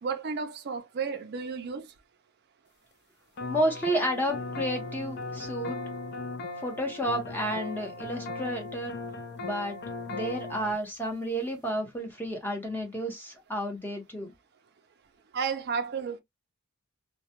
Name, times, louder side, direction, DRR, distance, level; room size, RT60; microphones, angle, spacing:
voice 1, 0.0-1.9 15.3-16.2, right 5 dB, 45° right, 0.4 m, -32 dB
sound 1, 3.4-10.7, left 2 dB, 50° left, 0.4 m, -37 dB
voice 2, 3.5-5.8 6.6-9.0 9.4-9.8 10.1-14.3, right 1 dB, 10° left, 0.7 m, -31 dB
2.2 x 2.1 x 2.8 m
head